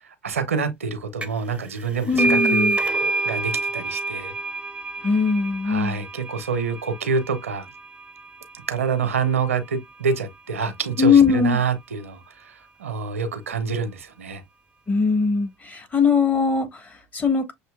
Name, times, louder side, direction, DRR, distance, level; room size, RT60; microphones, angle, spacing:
voice 1, 0.2-2.7 3.2-4.3 5.6-7.6 8.7-14.4, right 5 dB, 85° right, 0.7 m, -27 dB
sound 1, 1.2-1.5 1.8-9.1, right 3 dB, 15° right, 0.7 m, -27 dB
voice 2, 2.1-2.8 5.0-6.0 11.0-11.6 14.9-17.5, left 5 dB, 20° left, 1.3 m, -20 dB
6.4 x 2.8 x 2.2 m
hypercardioid pair, 70°, 7 cm